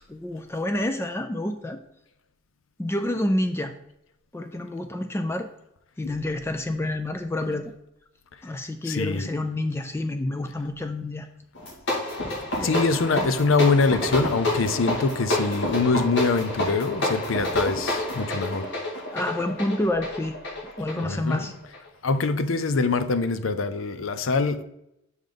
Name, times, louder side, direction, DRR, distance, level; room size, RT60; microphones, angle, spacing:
voice 1, 0.1-1.8 2.8-3.7 4.3-5.5 6.0-7.7 8.4-11.3 12.5-13.0 19.1-20.4 20.8-21.5, left 1 dB, 15° left, 7 dB, 0.3 m, -28 dB
voice 2, 8.8-9.3 12.6-18.7 20.9-21.5 22.0-24.6, left 4 dB, 85° left, 11 dB, 0.6 m, -24 dB
sound 1, 11.5-21.9, left 1 dB, 65° left, 2.0 m, -28 dB
6.3 x 5.2 x 3.7 m, 0.82 s
head